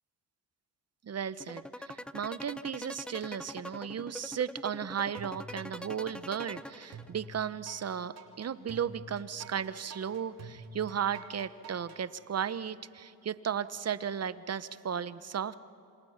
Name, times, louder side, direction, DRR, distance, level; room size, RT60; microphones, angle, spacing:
voice 1, 1.0-15.5, right 8 dB, 40° right, 15 dB, 1.0 m, -35 dB
sound 1, 1.4-7.3, left 1 dB, 5° left, 0.7 m, -43 dB
sound 2, 5.2-6.0 6.4-12.0, right 4 dB, 65° right, 3.2 m, -48 dB
27.0 x 26.0 x 5.9 m, 2.8 s
supercardioid pair, 70°, 38 cm